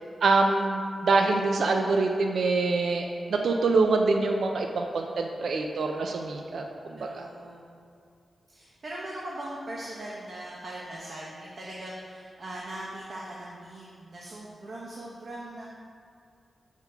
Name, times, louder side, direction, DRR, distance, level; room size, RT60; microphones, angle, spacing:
voice 1, 0.2-6.6 6.9-7.3, right 3 dB, 75° right, 3 dB, 0.4 m, -25 dB
voice 2, 7.0-7.7 8.5-15.7, right 1 dB, 55° right, -5 dB, 1.0 m, -40 dB
5.8 x 4.4 x 5.7 m, 2.3 s
wide cardioid pair, 125°, 0 cm